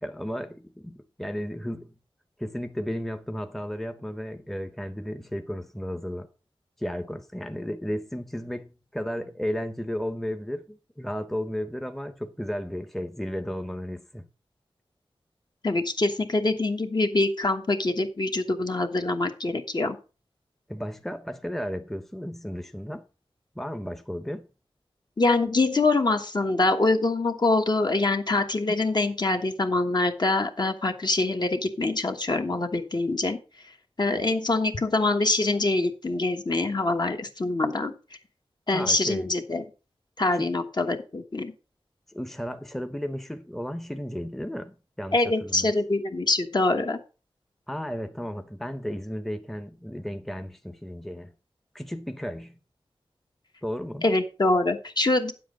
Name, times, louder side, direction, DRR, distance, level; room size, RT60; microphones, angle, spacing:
voice 1, 0.0-1.9 2.4-6.3 6.8-14.3 20.7-23.1 23.6-24.5 38.7-39.3 40.3-40.5 42.1-45.7 47.7-51.3 51.7-52.6 53.6-54.0, equal, 5° left, 0.7 m, -34 dB
voice 2, 15.6-20.0 25.2-33.4 34.0-37.9 38.7-39.7 40.2-41.5 45.1-47.0 54.0-55.3, left 2 dB, 45° left, 1.3 m, -24 dB
9.1 x 7.6 x 5.1 m
wide cardioid pair, 85°, 10 cm